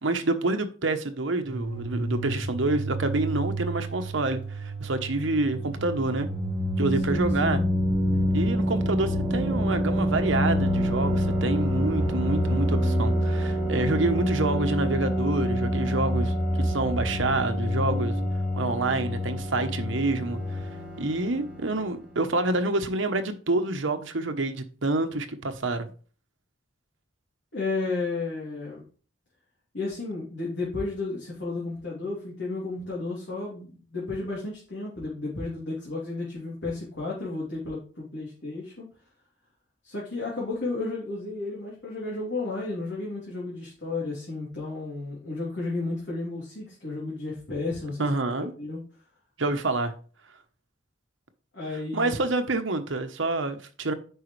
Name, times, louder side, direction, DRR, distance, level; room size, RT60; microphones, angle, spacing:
voice 1, 0.0-6.3 6.8-7.6 8.3-18.2 18.5-20.6 21.0-25.9 48.0-48.5 49.4-49.9 51.9-53.9, right 2 dB, 80° right, 1.0 m, -27 dB
sound 1, 1.4-20.6, equal, 20° right, 2.6 m, -30 dB
sound 2, 5.3-22.0, equal, 5° right, 1.4 m, -29 dB
voice 2, 7.1-7.7 27.5-28.8 29.7-38.8 39.8-48.1 48.4-48.8 51.5-52.2, left 3 dB, 65° left, 3.0 m, -33 dB
9.3 x 5.6 x 3.3 m
head